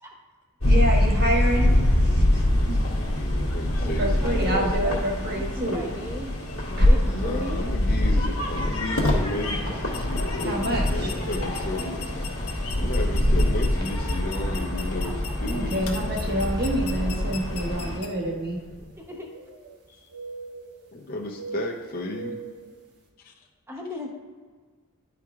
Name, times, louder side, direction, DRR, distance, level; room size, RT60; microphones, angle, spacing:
sound 1, 0.6-18.0, left 1 dB, 70° left, 1.5 m, -25 dB
voice 1, 0.6-1.7 2.0-2.8 4.0-5.9 6.8-6.9 10.4-11.1 15.5-18.6, right 1 dB, 45° right, -2 dB, 1.3 m, -28 dB
voice 2, 3.1-4.6 7.0-12.0 12.8-16.4 19.9-20.0 20.9-22.4 23.2-23.3, left 1 dB, 40° left, -1 dB, 0.6 m, -33 dB
voice 3, 3.8-6.3 6.6-7.6 8.1-8.3 9.7-10.1 14.5-14.6 15.0-15.6 19.0-19.3 23.7-24.1, equal, 10° right, 0 dB, 0.7 m, -37 dB
sound 2, 6.7-18.9, left 1 dB, 90° left, 1.1 m, -30 dB
sound 3, 15.7-15.8 16.6-16.7 18.6-19.8 20.1-20.9 21.3-22.7, right 5 dB, 90° right, 1.2 m, -40 dB
10.5 x 4.6 x 2.4 m, 1.5 s
head